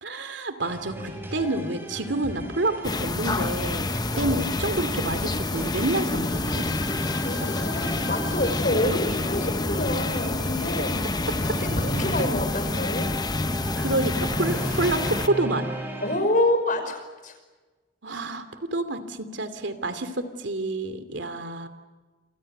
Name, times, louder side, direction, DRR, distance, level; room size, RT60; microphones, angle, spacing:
voice 1, 0.0-3.9 4.2-6.7 7.4-7.5 8.7-9.0 13.8-15.7 18.0-21.7, right 2 dB, 75° right, 10 dB, 2.8 m, -28 dB
sound 1, 0.6-16.2, right 1 dB, 10° right, 7.5 m, -35 dB
sound 2, 2.8-15.3, left 2 dB, 20° left, 0.8 m, -28 dB
voice 2, 4.1-4.6 7.2-11.1 11.4-13.1 16.0-17.3, left 1 dB, 45° left, 7 dB, 5.6 m, -27 dB
28.5 x 27.0 x 6.8 m, 1.3 s
head